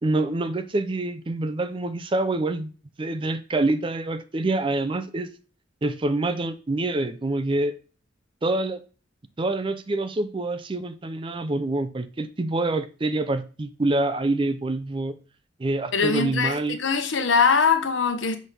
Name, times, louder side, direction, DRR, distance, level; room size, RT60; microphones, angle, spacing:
voice 1, 0.0-2.7 3.0-5.3 5.8-7.7 8.4-8.8 9.4-15.2 15.6-16.8, right 2 dB, 25° right, 0.5 m, -26 dB
voice 2, 15.9-18.4, left 5 dB, 85° left, 0.9 m, -22 dB
6.4 x 5.7 x 3.3 m
head